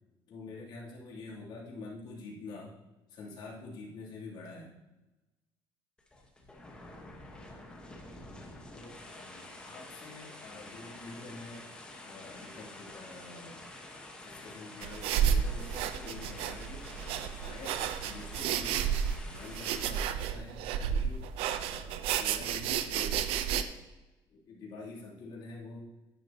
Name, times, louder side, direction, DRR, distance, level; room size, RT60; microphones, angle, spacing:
voice 1, 0.3-2.8 3.1-4.8 8.7-11.7 12.0-13.9 14.2-18.9 19.2-21.3 21.6-23.9 24.3-25.9, left 3 dB, 50° left, -5 dB, 3.1 m, -47 dB
sound 1, 6.0-19.8, left 1 dB, 10° left, 1.3 m, -48 dB
sound 2, 14.8-23.6, right 8 dB, 80° right, 0.7 m, -32 dB
11.0 x 9.8 x 2.9 m, 1.0 s
cardioid pair, 175°, 10 cm